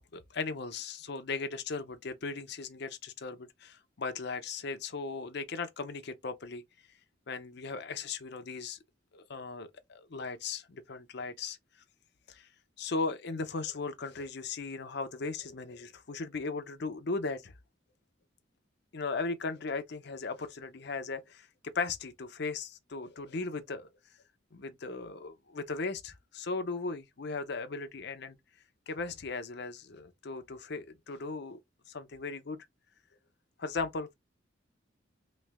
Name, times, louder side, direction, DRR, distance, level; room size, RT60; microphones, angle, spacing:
voice 1, 0.0-6.6 7.3-8.8 9.1-11.6 12.3-12.5 12.8-17.5 18.9-23.9 24.5-28.4 28.9-31.6 31.9-32.6 33.6-34.1, left 4 dB, 60° left, 0.7 m, -37 dB
3.2 x 3.1 x 3.5 m
head